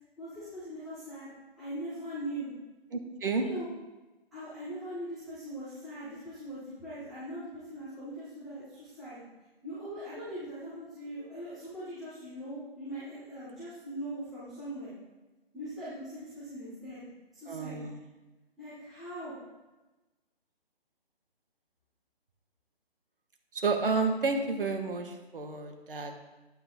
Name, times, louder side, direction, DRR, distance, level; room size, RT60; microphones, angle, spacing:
voice 1, 0.2-1.3 1.6-2.5 3.4-3.7 4.3-9.2 9.6-14.9 15.5-17.0 17.3-17.8 18.6-19.3, right 1 dB, ahead, -16 dB, 0.6 m, -41 dB
voice 2, 2.9-3.4 17.5-18.0 23.5-26.3, right 4 dB, 60° right, 4 dB, 1.9 m, -31 dB
11.0 x 9.0 x 3.8 m, 1.1 s
hypercardioid pair, 170°, 31 cm